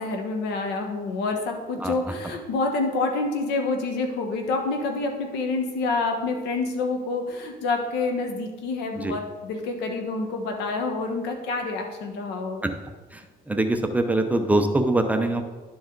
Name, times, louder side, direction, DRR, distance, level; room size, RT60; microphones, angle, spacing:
voice 1, 0.0-12.6, left 3 dB, 85° left, 4 dB, 1.2 m, -27 dB
voice 2, 13.5-15.4, right 2 dB, 10° right, 5 dB, 0.7 m, -23 dB
11.0 x 4.8 x 3.9 m, 1.3 s
cardioid pair, 110°, 17 cm